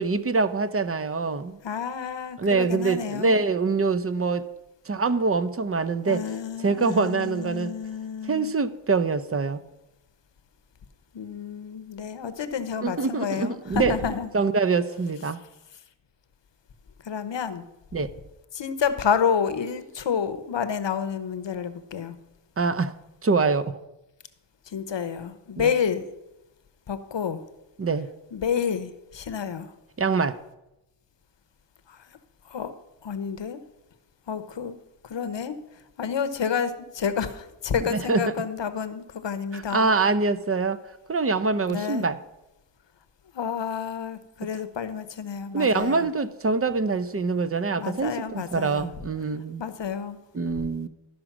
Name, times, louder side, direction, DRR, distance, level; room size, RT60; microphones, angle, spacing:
voice 1, 0.0-1.6 2.4-4.5 4.9-6.2 6.6-7.7 8.3-9.6 12.8-13.9 14.3-15.4 17.9-18.1 22.6-22.9 23.2-23.8 25.6-25.7 27.8-28.1 30.0-30.4 37.9-38.2 39.7-40.8 41.1-42.2 45.5-49.6 50.3-50.9, right 4 dB, 30° right, 13 dB, 0.6 m, -24 dB
voice 2, 1.6-3.4 6.1-8.5 11.1-14.3 17.0-17.7 18.5-22.2 24.7-26.0 26.9-27.4 28.3-29.7 31.9-32.2 32.4-32.7 33.0-33.6 34.3-34.8 35.0-39.9 41.7-42.1 43.3-46.1 47.7-48.9 49.6-50.2, left 7 dB, 60° left, 12 dB, 0.9 m, -29 dB
12.5 x 5.1 x 6.0 m, 0.93 s
cardioid pair, 60°, 50 cm